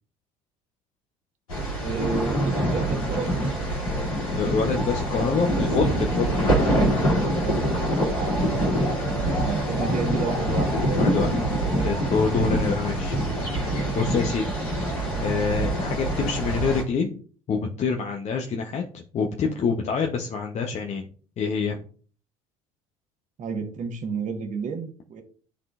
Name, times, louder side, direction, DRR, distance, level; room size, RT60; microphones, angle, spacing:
sound 1, 1.5-16.8, equal, 85° left, 2.2 m, -25 dB
voice 1, 1.8-3.5 5.1-5.8 7.2-7.7 8.1-8.7 9.4-11.3 23.4-25.2, right 5 dB, 45° right, 5 dB, 1.3 m, -31 dB
voice 2, 4.3-6.8 9.1-9.6 11.0-11.3 11.8-13.3 13.9-14.5 15.2-17.2 17.5-21.1 21.4-21.8, left 5 dB, 40° left, 2 dB, 0.8 m, -26 dB
11.5 x 3.8 x 2.4 m, 0.42 s
hypercardioid pair, 60°, 18 cm